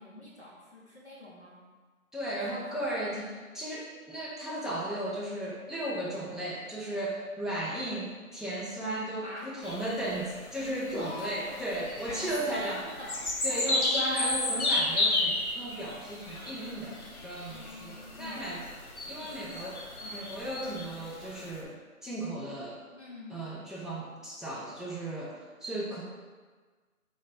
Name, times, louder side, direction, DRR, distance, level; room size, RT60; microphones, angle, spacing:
voice 1, 0.0-1.6 2.2-2.9 9.2-9.5 11.0-11.6 12.1-13.8 17.5-18.4 19.2-19.7 20.0-20.4 22.9-23.4, left 2 dB, 50° left, -5 dB, 0.8 m, -44 dB
voice 2, 2.1-12.8 13.4-18.6 19.1-19.8 20.1-21.8 22.0-22.8 23.3-26.0, right 1 dB, ahead, -7 dB, 0.5 m, -35 dB
sound 1, 9.6-21.6, left 2 dB, 80° left, 0.9 m, -33 dB
3.1 x 2.8 x 4.0 m, 1.4 s
figure-of-eight pair, 180°, 43 cm